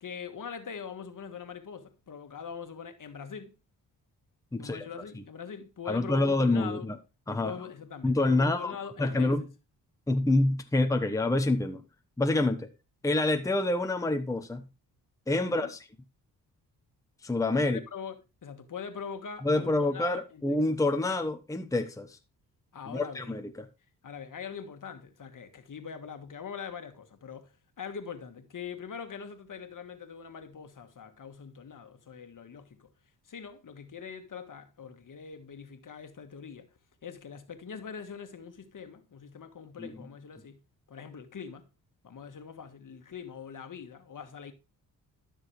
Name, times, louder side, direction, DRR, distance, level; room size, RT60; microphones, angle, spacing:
voice 1, 0.0-3.5 4.5-6.9 7.4-9.3 15.4-15.7 17.6-20.6 22.7-23.3 24.0-27.5 27.8-32.9 33.3-36.7 37.0-40.6 40.9-41.6 42.0-44.5, left 7 dB, 50° left, 1.7 m, -42 dB
voice 2, 4.5-4.9 5.9-7.0 7.3-7.5 8.0-9.5 10.1-11.8 12.2-12.7 13.0-14.6 15.3-15.9 17.2-17.8 19.4-22.2 22.9-23.7 39.8-39.9, left 2 dB, 10° left, 1.0 m, -27 dB
12.5 x 6.3 x 3.3 m
cardioid pair, 65°, 40 cm